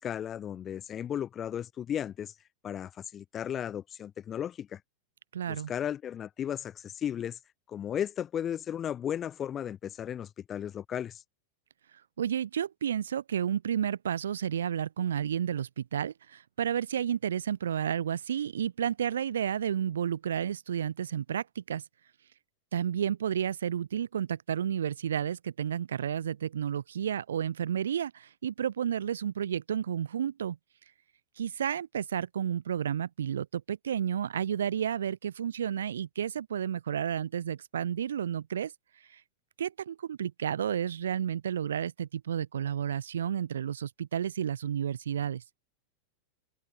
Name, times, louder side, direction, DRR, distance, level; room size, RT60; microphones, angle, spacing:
voice 1, 0.0-2.3 2.6-4.8 5.5-7.4 7.7-11.2, left 9 dB, 25° left, 4.4 m, -35 dB
voice 2, 5.3-5.7 12.2-21.8 22.7-30.6 31.4-38.7 39.1-39.2 39.6-45.4, right 9 dB, 65° right, 0.8 m, -31 dB
figure-of-eight pair, 90°, 0 cm